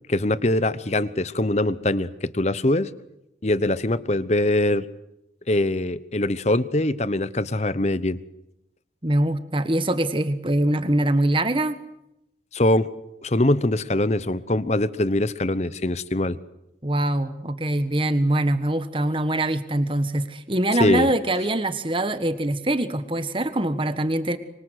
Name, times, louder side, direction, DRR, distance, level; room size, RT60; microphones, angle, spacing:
voice 1, 0.1-2.9 3.4-4.9 5.5-8.2 12.5-12.9 13.2-16.4 20.8-21.1, left 1 dB, 35° left, 16 dB, 0.9 m, -22 dB
voice 2, 9.0-11.8 16.8-24.4, right 1 dB, 25° right, 11 dB, 1.4 m, -23 dB
25.5 x 24.5 x 8.2 m, 0.86 s
head